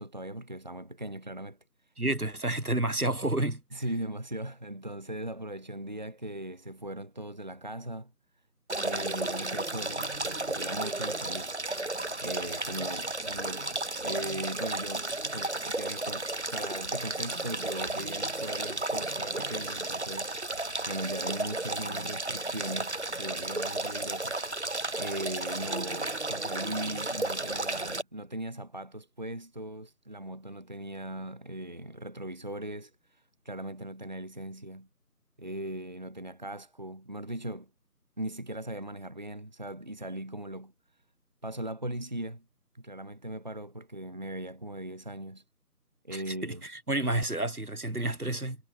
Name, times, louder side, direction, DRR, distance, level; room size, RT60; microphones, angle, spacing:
voice 1, 0.0-1.6 3.7-8.1 8.8-11.5 12.2-13.7 14.0-24.4 24.9-34.9 35.4-37.7 38.2-40.7 41.4-42.4 42.7-45.4 46.0-46.6 47.2-47.3, right 1 dB, 30° right, 1.9 m, -39 dB
voice 2, 2.0-3.6 46.1-48.6, right 2 dB, 70° right, 5.0 m, -30 dB
sound 1, 8.7-28.0, right 2 dB, 45° right, 1.6 m, -33 dB
figure-of-eight pair, 170°, 47 cm